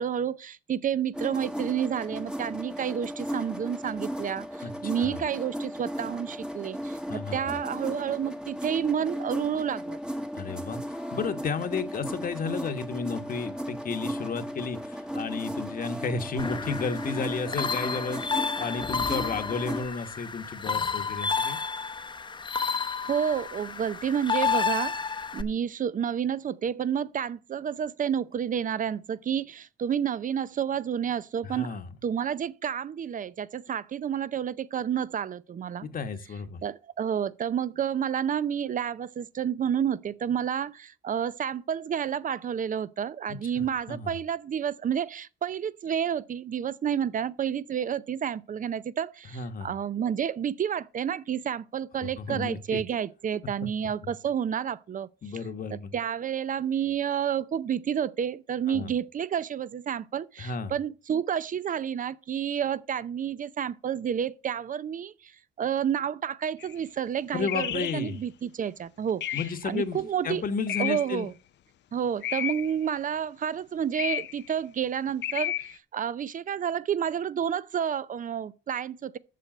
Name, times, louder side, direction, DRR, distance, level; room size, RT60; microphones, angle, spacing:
voice 1, 0.0-10.0 22.6-25.0 25.3-31.8 32.0-35.9 36.6-55.1 55.7-65.3 65.6-69.4 69.7-70.4 70.8-71.3 71.9-79.2, right 8 dB, 40° right, 0.6 m, -30 dB
sound 1, 1.1-19.9, equal, 5° right, 1.1 m, -36 dB
voice 2, 10.3-21.6 31.4-31.9 35.8-36.6 43.3-44.1 49.3-49.7 52.2-52.8 53.6-53.7 55.2-55.9 58.7-58.9 60.4-60.7 67.3-68.2 69.3-71.3, left 5 dB, 45° left, 1.2 m, -33 dB
sound 2, 16.4-25.4, left 5 dB, 25° left, 0.8 m, -31 dB
sound 3, 66.6-66.7 67.5-68.1 69.2-69.7 70.7-71.2 72.2-72.8 73.9-74.5 75.2-75.8, left 11 dB, 65° left, 0.6 m, -32 dB
7.7 x 6.7 x 7.6 m
cardioid pair, 90°, 20 cm